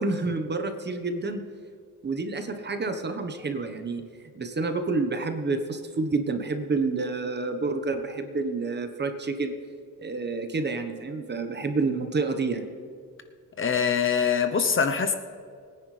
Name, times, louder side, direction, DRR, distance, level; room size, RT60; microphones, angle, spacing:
voice 1, 0.0-1.4 2.0-4.0 4.3-9.5 10.0-12.6, right 3 dB, 30° right, 7 dB, 1.3 m, -29 dB
voice 2, 13.6-15.1, left 6 dB, 35° left, 7 dB, 0.9 m, -23 dB
22.5 x 10.0 x 3.4 m, 2.1 s
cardioid pair, 105°, 34 cm